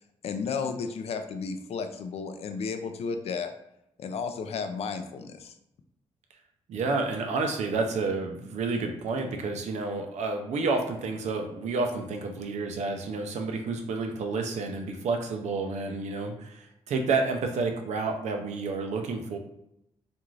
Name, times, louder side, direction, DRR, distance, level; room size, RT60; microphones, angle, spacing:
voice 1, 0.2-3.5 4.0-5.5, left 5 dB, 60° left, 7 dB, 0.4 m, -33 dB
voice 2, 6.7-19.4, right 3 dB, 75° right, 4 dB, 0.5 m, -30 dB
2.5 x 2.4 x 3.1 m, 0.81 s
wide cardioid pair, 145°, 12 cm